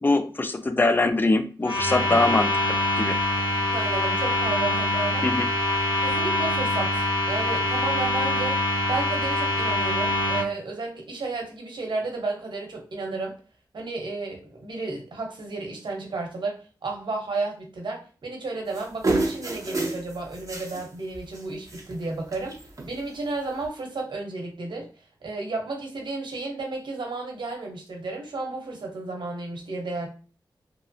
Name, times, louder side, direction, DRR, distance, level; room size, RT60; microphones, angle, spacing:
voice 1, 0.0-3.2 5.2-5.5, left 2 dB, 25° left, 10 dB, 0.3 m, -23 dB
sound 1, 1.6-10.4, left 1 dB, 70° left, 1.0 m, -24 dB
voice 2, 3.7-5.3 6.0-8.6 8.9-13.4 13.7-22.6 22.8-24.9 25.2-30.1, right 3 dB, 70° right, 1 dB, 0.8 m, -32 dB
sound 2, 18.7-20.9 21.1-21.4 21.7-22.0 22.3-22.8 23.6-23.7, right 2 dB, 40° right, 0.7 m, -29 dB
2.8 x 2.0 x 2.6 m, 0.37 s
wide cardioid pair, 70°, 8 cm